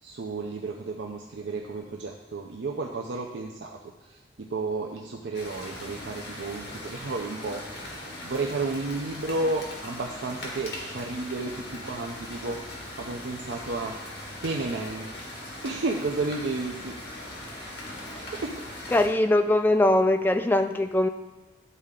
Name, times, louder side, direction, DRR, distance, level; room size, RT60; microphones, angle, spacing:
voice 1, 0.0-13.9 14.4-15.1 15.6-16.9 18.1-18.6, right 3 dB, 80° right, 0 dB, 0.6 m, -32 dB
sound 1, 5.3-19.1, left 1 dB, 70° left, 1.6 m, -40 dB
voice 2, 18.9-21.1, left 1 dB, 10° left, 7 dB, 0.3 m, -22 dB
11.0 x 4.2 x 3.7 m, 1.1 s
head